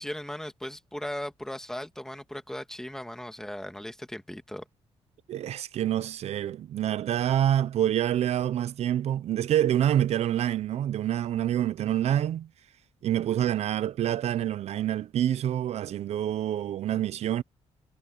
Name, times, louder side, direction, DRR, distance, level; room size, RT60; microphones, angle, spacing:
voice 1, 0.0-4.6, left 1 dB, 5° left, 1.8 m, -37 dB
voice 2, 5.3-12.5 13.0-17.4, right 11 dB, 65° right, 0.5 m, -27 dB
cardioid pair, 140°, 12 cm